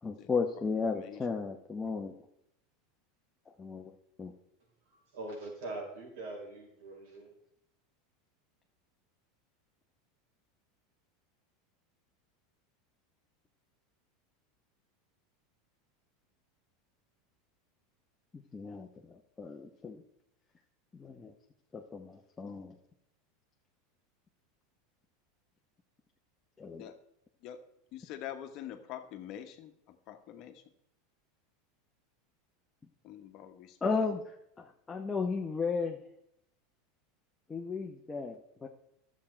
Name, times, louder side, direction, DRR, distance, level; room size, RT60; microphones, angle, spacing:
voice 1, 0.0-2.2 3.6-3.9 4.2-4.3 18.3-20.0 20.9-21.3 21.7-22.8 26.6-26.9 33.8-36.0 37.5-38.7, left 4 dB, 15° left, 0.8 m, -35 dB
voice 2, 5.1-7.3, right 2 dB, 75° right, 4.6 m, -42 dB
voice 3, 27.9-30.6 33.0-33.8, left 11 dB, 50° left, 1.1 m, -45 dB
11.5 x 7.4 x 4.4 m
supercardioid pair, 125°, 0 cm